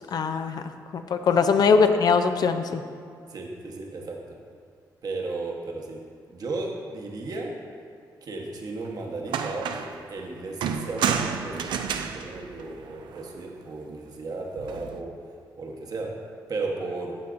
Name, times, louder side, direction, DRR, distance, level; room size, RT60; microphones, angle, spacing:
voice 1, 0.1-0.6 0.9-2.8, left 5 dB, 60° left, 8 dB, 0.4 m, -21 dB
voice 2, 1.5-1.9 3.3-4.2 5.0-6.0 6.3-7.5 8.2-15.1 15.6-16.1 16.5-17.1, right 3 dB, 55° right, 0 dB, 1.1 m, -35 dB
sound 1, 8.9-9.0 9.3-10.0 10.6-13.3 14.6-15.0, right 7 dB, 85° right, 0.4 m, -30 dB
12.0 x 5.7 x 2.5 m, 2.2 s
cardioid pair, 75°, 8 cm